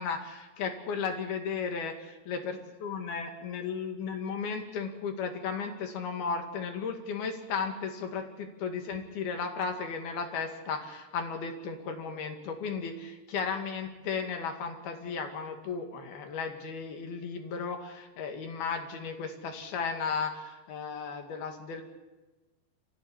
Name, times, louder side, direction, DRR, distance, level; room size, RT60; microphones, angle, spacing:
voice 1, 0.0-21.8, left 5 dB, 70° left, 5 dB, 4.0 m, -35 dB
24.5 x 15.0 x 9.9 m, 1.1 s
omnidirectional pair, 4.7 m